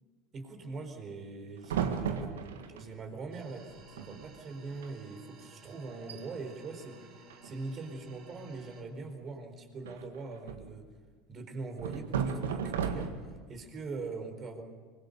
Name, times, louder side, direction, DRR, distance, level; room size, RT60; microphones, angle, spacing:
voice 1, 0.3-10.9 11.3-13.2 13.5-14.6, right 3 dB, 35° right, 6 dB, 4.4 m, -42 dB
sound 1, 1.6-2.8 3.7-3.8 4.0-4.3 4.7-4.9 5.4-5.5 5.9-6.2 7.3-7.9 9.9-10.8 11.8-13.4, right 7 dB, 80° right, 1.6 m, -35 dB
sound 2, 3.3-8.8, right 3 dB, 55° right, 3.5 m, -56 dB
24.5 x 22.0 x 6.9 m, 1.5 s
hypercardioid pair, 80°, 0 cm